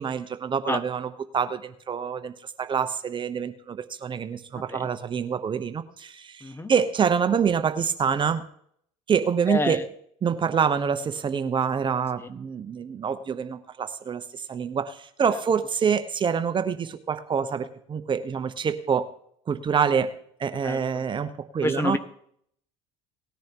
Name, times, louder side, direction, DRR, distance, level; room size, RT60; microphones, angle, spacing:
voice 1, 0.0-8.4 9.1-9.8 10.2-19.1 19.5-20.1 20.4-22.0, right 6 dB, 35° right, 10 dB, 1.0 m, -26 dB
voice 2, 6.4-6.7 9.5-9.8 20.6-20.8 21.6-22.0, left 2 dB, 15° left, 10 dB, 1.2 m, -27 dB
18.5 x 10.5 x 3.0 m, 0.65 s
supercardioid pair, 80°, 15 cm